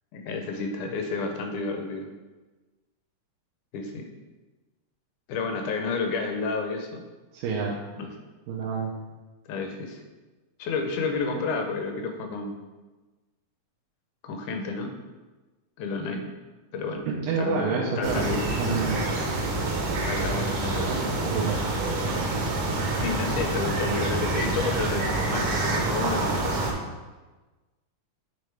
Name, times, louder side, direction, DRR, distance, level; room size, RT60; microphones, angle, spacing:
voice 1, 0.1-2.1 3.7-4.1 5.3-7.0 8.0-8.1 9.5-10.0 10.6-12.6 14.2-14.9 15.8-16.3 16.7-17.0 17.4-18.4 20.1-20.9 23.0-26.8, left 4 dB, 75° left, 4 dB, 1.9 m, -31 dB
voice 2, 7.3-7.8 8.5-8.9 17.1-19.0 20.9-21.6, right 4 dB, 85° right, -5 dB, 2.4 m, -28 dB
sound 1, 18.0-26.7, right 2 dB, 65° right, 1.6 m, -27 dB
8.5 x 3.7 x 3.3 m, 1.2 s
omnidirectional pair, 3.7 m